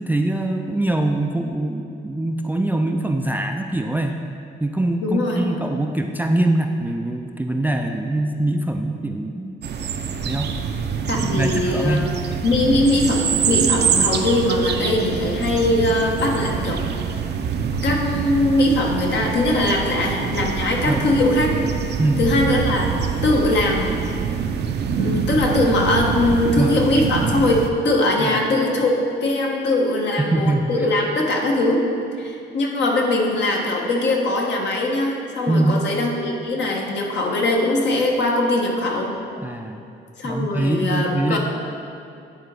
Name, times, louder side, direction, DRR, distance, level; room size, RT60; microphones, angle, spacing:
voice 1, 0.0-4.2 4.6-9.5 10.2-10.5 11.1-12.1 20.9-21.0 22.0-22.2 26.4-26.8 28.2-28.5 30.1-30.6 35.5-35.8 39.4-39.8 40.2-41.4, right 1 dB, 10° right, 4 dB, 0.4 m, -23 dB
voice 2, 5.0-5.5 11.1-12.1 12.4-16.8 17.8-21.5 22.2-22.9 23.2-24.0 25.0-31.8 32.2-39.1 40.2-41.4, left 2 dB, 65° left, 0 dB, 1.3 m, -21 dB
sound 1, 9.6-27.7, right 6 dB, 55° right, 0.6 m, -25 dB
10.0 x 3.9 x 4.7 m, 2.5 s
cardioid pair, 90°, 20 cm